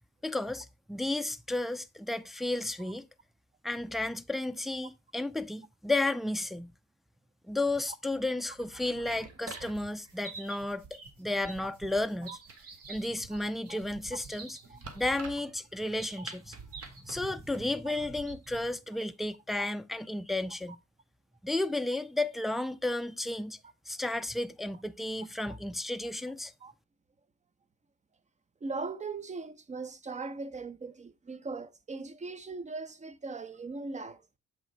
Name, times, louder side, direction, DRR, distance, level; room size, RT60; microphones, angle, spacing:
voice 1, 0.2-3.1 3.6-6.7 7.5-12.4 12.9-14.6 15.0-16.6 17.0-20.8 21.4-23.6 23.9-26.5, left 2 dB, ahead, 0.4 m, -33 dB
sound 1, 8.5-18.7, right 4 dB, 50° right, 1.8 m, -47 dB
sound 2, 9.4-17.7, right 5 dB, 75° right, 4.8 m, -65 dB
voice 2, 28.6-34.2, right 3 dB, 25° right, 0.8 m, -39 dB
7.5 x 3.8 x 4.5 m
cardioid pair, 90°, 30 cm